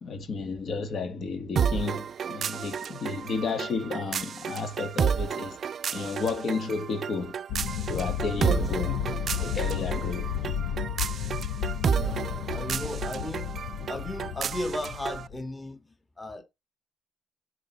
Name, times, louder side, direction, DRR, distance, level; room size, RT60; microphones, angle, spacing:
voice 1, 0.0-5.6 5.9-7.3 7.9-9.0 9.3-10.6, left 4 dB, 55° left, 1.9 m, -32 dB
sound 1, 1.6-15.3, right 7 dB, 55° right, 0.4 m, -31 dB
sound 2, 7.5-15.4, left 9 dB, 85° left, 0.6 m, -32 dB
voice 2, 8.4-8.7 9.5-9.7 11.9-12.2 12.5-13.6 13.9-16.4, left 2 dB, 20° left, 2.1 m, -36 dB
6.6 x 4.8 x 6.3 m
cardioid pair, 90°, 0 cm